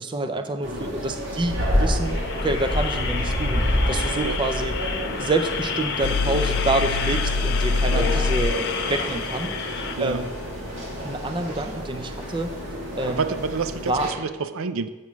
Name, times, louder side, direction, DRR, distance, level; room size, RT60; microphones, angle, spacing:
voice 1, 0.0-4.7 5.2-8.6 8.9-10.3 11.0-12.5 13.0-13.2 13.9-14.1, right 2 dB, 20° right, 7 dB, 0.5 m, -27 dB
sound 1, 0.6-14.1, equal, 60° right, 2.4 m, -29 dB
sound 2, 2.0-9.9, left 5 dB, 50° left, 0.9 m, -31 dB
sound 3, 6.0-9.6, left 4 dB, 80° left, 0.4 m, -25 dB
voice 2, 13.0-14.9, right 4 dB, 75° right, 11 dB, 0.5 m, -28 dB
8.3 x 6.5 x 6.0 m, 1.2 s
head